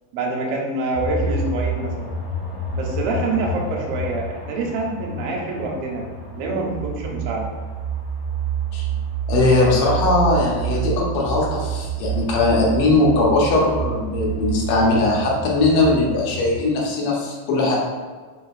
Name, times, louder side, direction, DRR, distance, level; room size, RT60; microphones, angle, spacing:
voice 1, 0.1-2.1 2.7-6.1 6.4-7.5, right 2 dB, 80° right, -1 dB, 1.4 m, -26 dB
sound 1, 0.9-16.7, right 5 dB, 50° left, 1.7 m, -28 dB
voice 2, 9.3-17.8, left 2 dB, 70° left, -3 dB, 1.3 m, -19 dB
4.2 x 3.7 x 2.4 m, 1.4 s
omnidirectional pair, 3.4 m